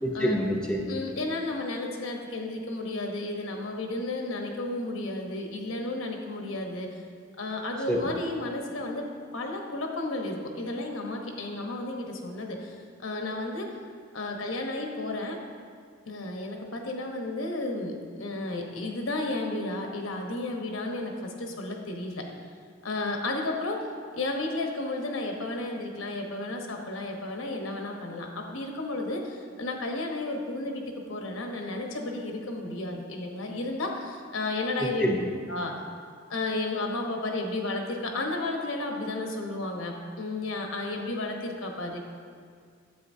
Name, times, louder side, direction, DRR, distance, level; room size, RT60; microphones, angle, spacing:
voice 1, 0.0-0.8 7.9-8.1 34.8-35.2, equal, 5° left, -1 dB, 0.6 m, -26 dB
voice 2, 0.9-6.9 7.4-9.1 9.3-13.7 14.1-15.4 16.1-22.3 22.8-23.9 24.1-35.0 35.5-35.8 36.3-42.0, left 2 dB, 85° left, 2 dB, 1.0 m, -33 dB
9.4 x 7.9 x 2.7 m, 2.1 s
head